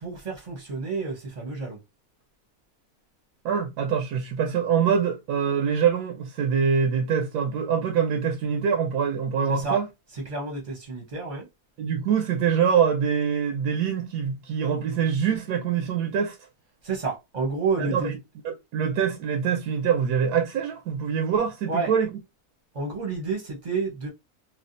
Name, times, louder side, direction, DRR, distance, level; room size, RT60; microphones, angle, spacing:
voice 1, 0.0-1.8 9.5-9.8 10.3-11.5 16.8-18.2 21.7-21.9 22.7-24.1, right 4 dB, 35° right, 0.7 m, -29 dB
voice 2, 3.4-9.9 11.8-16.4 17.8-18.2 18.4-22.1, right 7 dB, 80° right, 1.1 m, -24 dB
3.3 x 2.3 x 2.5 m
omnidirectional pair, 1.6 m